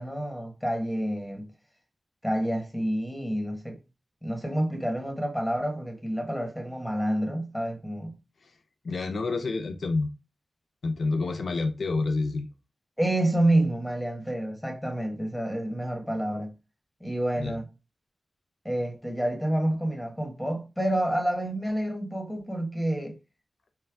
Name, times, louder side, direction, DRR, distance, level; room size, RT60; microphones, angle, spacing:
voice 1, 0.0-1.5 2.2-3.8 4.2-8.1 13.0-16.5 17.0-17.7 18.6-23.2, right 1 dB, 5° left, 1.5 m, -28 dB
voice 2, 8.8-10.1 10.8-12.5 17.4-17.5, left 3 dB, 80° left, 0.5 m, -28 dB
4.4 x 2.2 x 3.5 m
cardioid pair, 45°, 0 cm